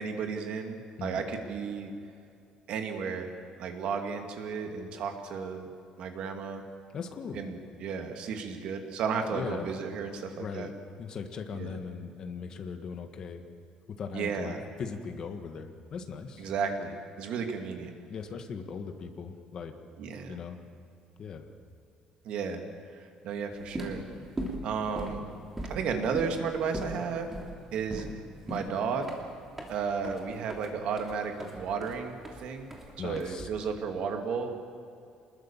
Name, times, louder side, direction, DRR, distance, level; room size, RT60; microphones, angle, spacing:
voice 1, 0.0-1.9 2.7-3.3 3.6-5.7 6.0-6.6 7.3-10.7 11.5-11.8 14.1-14.6 16.4-17.9 20.0-20.4 22.2-22.6 22.9-24.0 24.6-25.2 25.7-27.3 27.7-28.1 28.5-29.1 29.7-32.7 33.0-34.5, right 6 dB, 55° right, 4 dB, 2.5 m, -33 dB
voice 2, 6.9-7.5 9.3-9.7 10.4-10.7 11.0-13.4 14.0-16.5 18.1-19.7 20.3-20.6 21.2-21.4 33.0-33.5, left 5 dB, 35° left, 6 dB, 1.6 m, -39 dB
sound 1, 23.6-33.8, right 1 dB, 10° right, 3.0 m, -40 dB
26.5 x 21.0 x 7.4 m, 2.5 s
cardioid pair, 175°, 2 cm